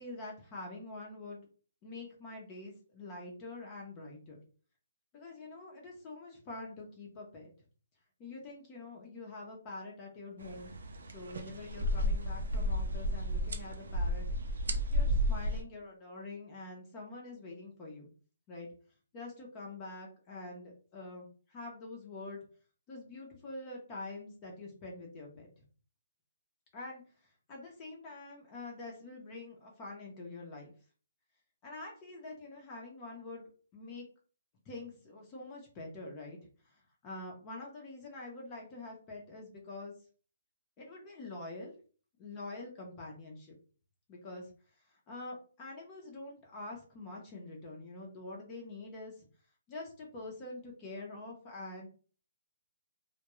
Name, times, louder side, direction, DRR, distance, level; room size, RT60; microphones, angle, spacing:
voice 1, 0.0-1.5 1.8-4.4 5.1-7.5 8.2-10.7 11.1-14.3 14.9-18.1 18.5-18.7 19.1-22.4 22.9-25.5 26.7-30.7 31.6-34.0 34.7-36.4 36.6-39.9 40.8-41.8 42.2-43.5 44.1-44.5 44.9-49.3 49.7-51.9, left 2 dB, 25° left, -1 dB, 0.7 m, -46 dB
sound 1, 10.4-15.6, equal, 80° right, 0.5 m, -32 dB
2.3 x 2.2 x 3.0 m, 0.39 s
hypercardioid pair, 155°, 0 cm